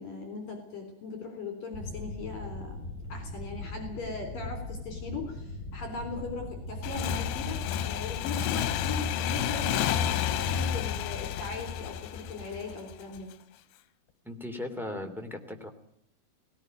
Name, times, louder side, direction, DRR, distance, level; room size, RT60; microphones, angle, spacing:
voice 1, 0.0-2.8 3.1-13.3, left 3 dB, 60° left, 5 dB, 5.3 m, -39 dB
sound 1, 1.7-7.6, left 1 dB, 25° left, 8.7 m, -40 dB
Motorcycle / Engine, 6.8-13.2, left 9 dB, 85° left, 3.1 m, -30 dB
voice 2, 14.2-15.7, left 1 dB, ahead, 4 dB, 1.7 m, -37 dB
18.5 x 18.5 x 9.2 m, 0.71 s
omnidirectional pair, 4.7 m